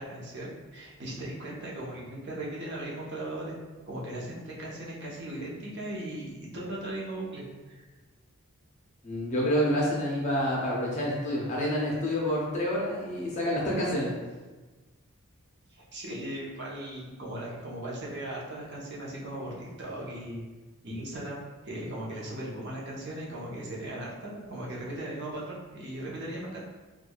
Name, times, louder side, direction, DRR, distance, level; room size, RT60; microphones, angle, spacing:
voice 1, 0.0-3.6 3.8-7.8 15.7-20.4 20.8-26.6, right 1 dB, 50° right, -4 dB, 0.7 m, -38 dB
voice 2, 9.0-14.1, equal, 30° left, -4 dB, 0.5 m, -28 dB
4.5 x 2.3 x 2.3 m, 1.2 s
head